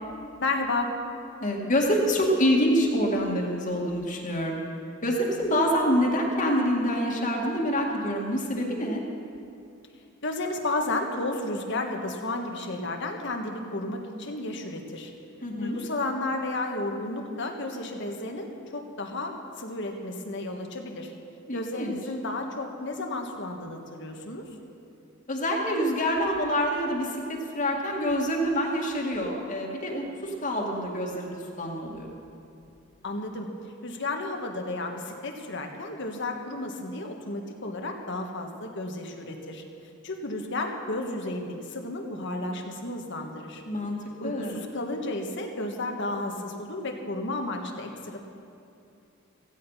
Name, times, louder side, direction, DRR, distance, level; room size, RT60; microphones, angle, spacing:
voice 1, 0.4-0.9 10.2-15.1 15.6-21.1 21.5-24.4 33.0-33.5 33.8-39.6 40.0-43.6 44.2-48.2, left 2 dB, 60° left, 3 dB, 1.6 m, -32 dB
voice 2, 1.4-4.6 5.0-9.0 15.4-15.8 21.5-21.9 25.3-32.1 43.7-44.0 44.2-44.6, equal, 40° left, -1 dB, 2.1 m, -26 dB
16.5 x 15.0 x 5.7 m, 2.7 s
head